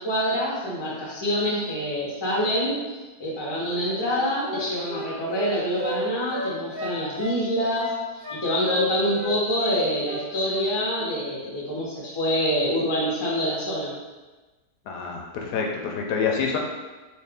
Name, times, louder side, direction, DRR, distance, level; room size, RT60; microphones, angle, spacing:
voice 1, 0.0-2.8 3.2-13.9, equal, 20° left, -6 dB, 0.7 m, -26 dB
Wind instrument woodwind instrument, 4.0-6.0 6.3-7.4 7.8-8.4 8.6-9.3 9.6-9.8 10.0-10.7 10.9-11.2, left 1 dB, 20° right, 0.4 m, -32 dB
voice 2, 14.9-16.6, left 6 dB, 80° left, 0 dB, 1.1 m, -27 dB
3.2 x 2.7 x 3.5 m, 1.2 s
omnidirectional pair, 1.8 m